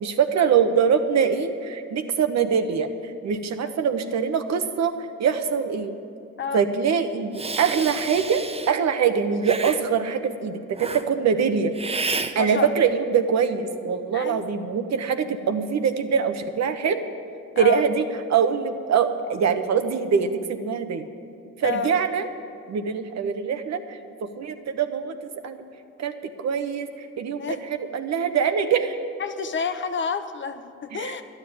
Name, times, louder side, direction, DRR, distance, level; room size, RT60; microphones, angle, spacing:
voice 1, 0.0-2.9 3.2-4.9 5.2-5.9 6.5-7.3 7.6-11.7 12.3-17.0 17.6-18.0 18.3-21.0 21.6-22.3 22.7-25.1 25.4-25.6 26.0-27.6 27.9-29.0 31.0-31.2, right 7 dB, 60° right, 8 dB, 1.1 m, -23 dB
Hiss, 7.3-8.7 9.4-9.8 10.8-11.0 11.8-12.3, right 3 dB, 20° right, 0.8 m, -30 dB
voice 2, 12.4-12.7 14.1-14.5 17.5-17.9 21.6-21.9 27.4-27.6 29.2-31.2, left 6 dB, 40° left, 9 dB, 1.0 m, -29 dB
12.5 x 10.0 x 8.2 m, 2.7 s
cardioid pair, 90°, 30 cm